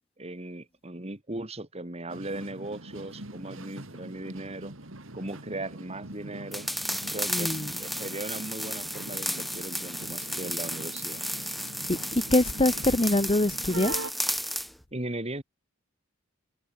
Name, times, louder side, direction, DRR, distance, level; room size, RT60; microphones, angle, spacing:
voice 1, 0.2-4.7 5.1-6.7 7.1-11.3 14.9-15.4, right 2 dB, 30° right, 2.4 m, -38 dB
sound 1, 2.1-14.1, right 2 dB, 75° right, 3.5 m, -43 dB
sound 2, 6.5-14.7, equal, ahead, 0.6 m, -33 dB
voice 2, 7.3-7.7 11.9-13.9, left 1 dB, 25° left, 1.1 m, -24 dB
head